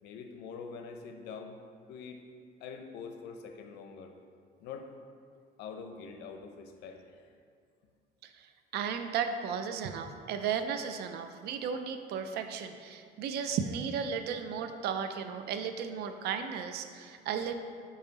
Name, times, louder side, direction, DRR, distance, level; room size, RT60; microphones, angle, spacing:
voice 1, 0.0-1.6 1.9-2.2 2.6-4.1 4.6-4.9 5.6-7.3, left 5 dB, 85° left, 5 dB, 0.6 m, -44 dB
voice 2, 8.7-17.5, right 7 dB, 75° right, 8 dB, 0.5 m, -35 dB
5.5 x 4.9 x 4.0 m, 2.2 s
cardioid pair, 110°, 17 cm